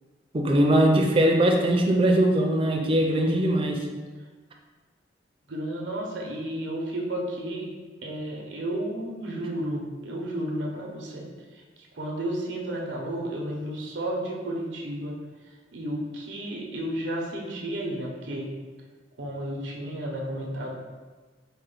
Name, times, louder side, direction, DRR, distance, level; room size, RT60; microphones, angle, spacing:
voice 1, 0.3-3.8, right 1 dB, 30° right, 1 dB, 0.4 m, -21 dB
voice 2, 5.5-7.7 8.0-11.6 11.9-15.1 15.7-18.5 19.2-20.7, right 1 dB, 85° right, -1 dB, 0.7 m, -32 dB
4.3 x 2.1 x 3.8 m, 1.3 s
head